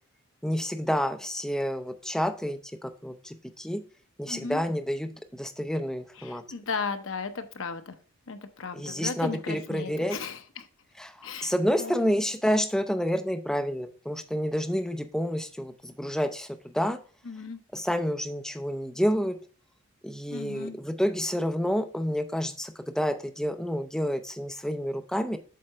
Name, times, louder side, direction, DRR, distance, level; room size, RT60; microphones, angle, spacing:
voice 1, 0.4-3.8 4.2-6.4 8.7-10.2 11.0-17.0 17.7-19.4 20.0-25.4, equal, ahead, 6 dB, 0.5 m, -29 dB
voice 2, 4.3-4.6 6.2-8.0 8.3-10.7 11.2-11.5 11.8-12.2 17.2-17.6 20.3-20.8, left 5 dB, 65° left, 8 dB, 0.7 m, -36 dB
7.6 x 3.8 x 4.5 m, 0.40 s
head